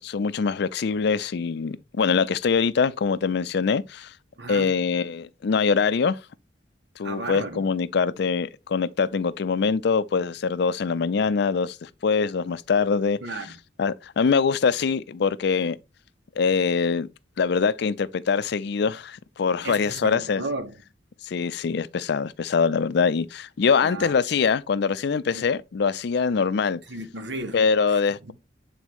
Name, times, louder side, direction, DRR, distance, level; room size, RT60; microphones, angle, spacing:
voice 1, 0.0-4.1 4.5-6.2 7.0-13.2 13.8-15.8 16.4-17.1 17.4-20.4 21.2-26.8 27.5-28.3, left 5 dB, 65° left, 0.4 m, -23 dB
voice 2, 4.4-4.8 7.0-7.7 13.2-13.6 19.6-20.8 23.8-24.1 25.3-25.5 26.9-27.6 27.9-28.3, right 2 dB, 70° right, 1.2 m, -34 dB
8.1 x 4.1 x 2.9 m
head